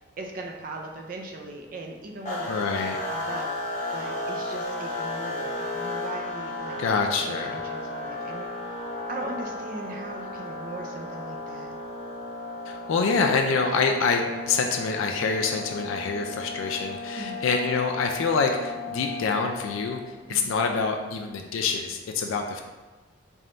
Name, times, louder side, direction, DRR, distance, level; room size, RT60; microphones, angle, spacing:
voice 1, 0.0-2.5 3.1-6.8 7.2-8.5 8.9-11.7 17.2-17.5 20.3-20.5, right 2 dB, 45° right, 2 dB, 0.4 m, -39 dB
sound 1, 2.3-20.1, left 2 dB, 35° left, 0.8 m, -34 dB
voice 2, 2.5-3.0 6.8-7.7 12.7-22.6, left 4 dB, 80° left, 3 dB, 0.4 m, -26 dB
3.5 x 2.5 x 4.2 m, 1.2 s
head